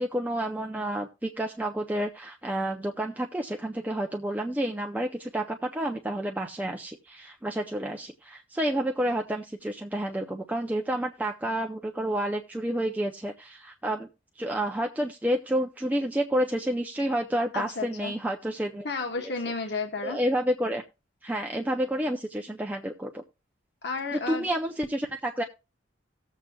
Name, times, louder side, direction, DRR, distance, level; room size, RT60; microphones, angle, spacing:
voice 1, 0.0-14.1 14.4-18.9 19.2-19.3 20.0-20.8 21.2-23.2 24.1-25.4, right 1 dB, 10° right, 2 dB, 0.4 m, -30 dB
voice 2, 17.5-18.1 18.8-20.2 23.8-24.5, left 4 dB, 55° left, 4 dB, 1.0 m, -32 dB
18.0 x 7.4 x 2.3 m, 0.30 s
head